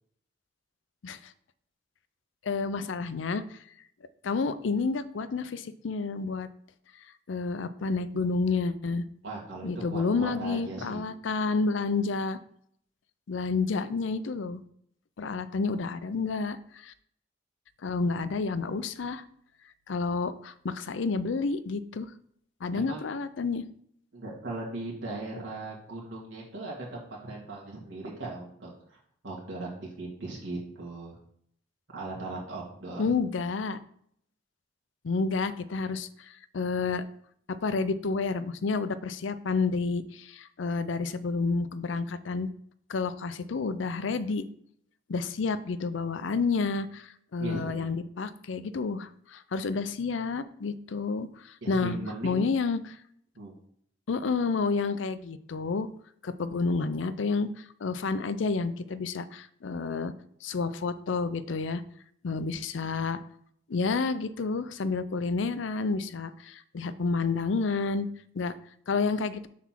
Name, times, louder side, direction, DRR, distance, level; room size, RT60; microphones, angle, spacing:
voice 1, 2.4-3.6 4.2-6.5 7.3-9.1 9.6-12.4 13.3-14.6 15.2-16.9 17.8-19.2 19.9-22.1 22.6-23.7 33.0-33.8 35.0-37.0 37.5-42.5 42.9-44.5 45.1-52.0 52.2-53.0 54.1-55.9 56.2-60.1 60.4-61.8 62.2-63.2 63.7-68.1 68.3-68.6 68.9-69.4, left 4 dB, 80° left, 13 dB, 0.5 m, -30 dB
voice 2, 9.2-11.0 22.7-23.1 24.1-29.0 29.2-31.2 31.9-33.0 47.4-47.9 51.6-52.4 53.4-53.5, right 2 dB, 80° right, -4 dB, 2.1 m, -38 dB
6.1 x 4.2 x 5.9 m, 0.67 s
head